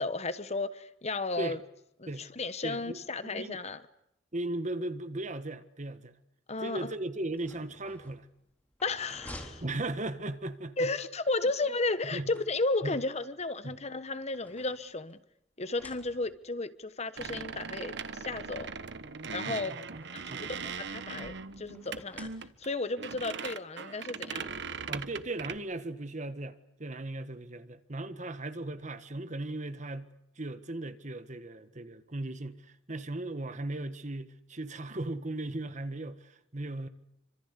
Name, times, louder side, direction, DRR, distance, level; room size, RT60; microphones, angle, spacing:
voice 1, 0.0-1.6 2.0-3.8 6.5-6.9 8.8-9.6 10.8-15.2 15.6-18.7 19.3-19.8 20.1-22.3 22.6-24.6, left 3 dB, 35° left, 1.2 m, -33 dB
voice 2, 2.6-3.6 4.3-6.2 6.6-8.3 9.6-10.9 12.1-12.3 12.8-13.0 13.6-13.8 19.4-20.0 20.3-20.5 24.9-30.1 30.4-36.9, right 2 dB, 40° right, 1.5 m, -37 dB
sound 1, 7.2-10.5 11.8-13.0 13.8-15.2 15.6-16.5 17.5-17.6 17.9-18.0 19.2-20.5 21.7-22.9, left 1 dB, 10° left, 3.7 m, -52 dB
sound 2, 17.2-25.6, right 5 dB, 65° right, 1.2 m, -40 dB
27.0 x 25.5 x 8.3 m
head